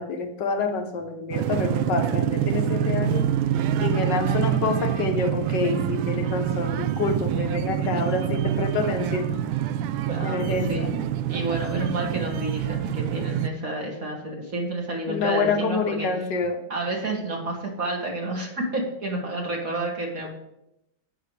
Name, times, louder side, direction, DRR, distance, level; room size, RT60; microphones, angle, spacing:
voice 1, 0.0-3.3 3.8-9.3 10.2-11.0 15.1-16.7, left 4 dB, 65° left, 6 dB, 1.5 m, -27 dB
sound 1, 1.3-13.5, right 10 dB, 85° right, 1.4 m, -26 dB
voice 2, 10.1-11.0 11.3-16.1 16.7-20.3, right 2 dB, 45° right, 0 dB, 2.7 m, -30 dB
17.0 x 6.4 x 3.3 m, 0.83 s
omnidirectional pair, 2.2 m